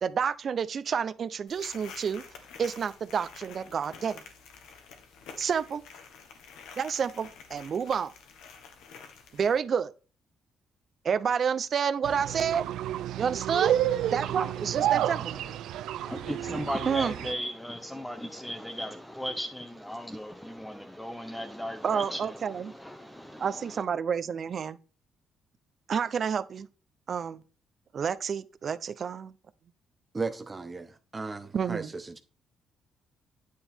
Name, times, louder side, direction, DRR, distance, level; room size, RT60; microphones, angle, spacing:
voice 1, 0.0-2.2 2.6-4.2 5.4-5.8 6.8-8.1 9.3-9.9 11.0-12.6 13.2-13.8 14.1-15.3 16.9-17.1 21.8-22.7 23.4-24.8 25.9-26.7 27.1-27.4 27.9-29.3 31.5-31.9, right 7 dB, 50° right, 0.7 m, -29 dB
sound 1, 1.5-9.6, left 6 dB, 90° left, 1.7 m, -49 dB
sound 2, 12.0-17.3, right 12 dB, 85° right, 0.4 m, -30 dB
voice 2, 13.9-15.5 16.0-23.8, equal, 5° left, 0.9 m, -37 dB
voice 3, 30.1-32.2, right 4 dB, 25° right, 0.9 m, -36 dB
9.5 x 7.1 x 3.6 m
cardioid pair, 90°, 0 cm